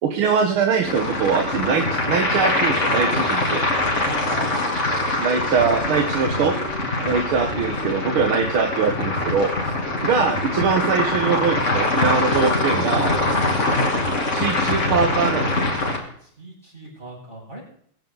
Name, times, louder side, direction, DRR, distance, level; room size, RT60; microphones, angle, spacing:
voice 1, 0.0-3.6 5.2-6.5 7.0-9.7 10.0-13.1 14.3-15.6, right 5 dB, 80° right, 4 dB, 2.1 m, -22 dB
sound 1, 0.8-16.0, left 2 dB, 35° left, 2.9 m, -23 dB
voice 2, 3.9-4.6 6.2-7.4 16.2-17.6, right 1 dB, 30° right, -6 dB, 6.1 m, -39 dB
22.5 x 9.6 x 3.9 m, 0.64 s
omnidirectional pair, 2.3 m